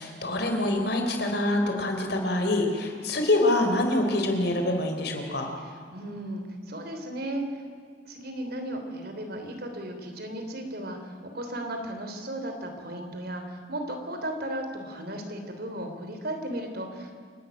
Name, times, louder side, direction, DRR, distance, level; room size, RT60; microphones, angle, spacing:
voice 1, 0.0-5.5, left 1 dB, 60° left, 4 dB, 3.7 m, -25 dB
voice 2, 5.6-7.6 8.1-17.1, right 1 dB, 55° right, 5 dB, 3.4 m, -35 dB
28.5 x 12.5 x 9.0 m, 2.2 s
head